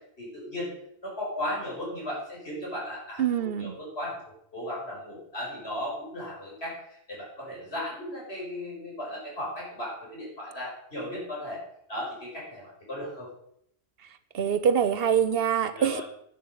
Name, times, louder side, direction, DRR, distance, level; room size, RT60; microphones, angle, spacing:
voice 1, 0.2-0.7 1.0-4.2 4.5-11.6 11.9-13.3 15.7-16.0, left 1 dB, 75° left, -4 dB, 5.9 m, -36 dB
voice 2, 3.2-3.8 14.3-16.0, right 8 dB, 65° right, 13 dB, 1.0 m, -24 dB
11.0 x 9.1 x 5.6 m, 0.72 s
omnidirectional pair, 1.1 m